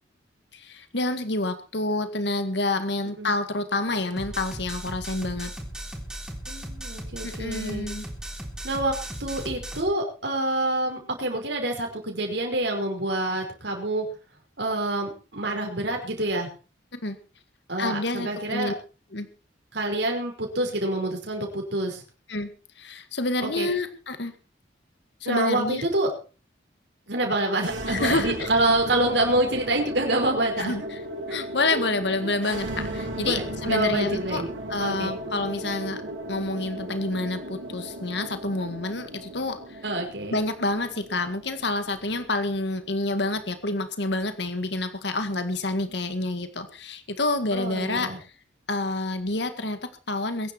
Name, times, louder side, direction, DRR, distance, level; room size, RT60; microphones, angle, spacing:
voice 1, 0.5-5.5 7.2-8.1 16.9-17.2 17.8-18.7 19.1-19.3 22.3-24.3 25.2-25.8 27.9-28.5 30.6-31.0 31.3-34.4 34.7-36.0 36.3-39.8 40.3-48.3 48.7-50.5, left 2 dB, 65° left, 9 dB, 1.8 m, -28 dB
sound 1, 4.2-9.8, right 1 dB, 5° right, 3.6 m, -37 dB
voice 2, 6.5-7.9 8.6-8.9 9.2-14.0 14.6-16.5 17.7-18.7 19.7-22.0 23.4-23.7 25.3-26.1 27.1-30.9 31.3-31.4 31.7-31.8 32.2-32.3 33.3-34.5 34.8-35.2 39.8-40.4 47.5-48.2, right 1 dB, 65° right, 2 dB, 5.2 m, -27 dB
sound 2, 27.5-43.6, right 1 dB, 85° right, 5.7 m, -37 dB
22.5 x 10.5 x 4.5 m, 0.36 s
head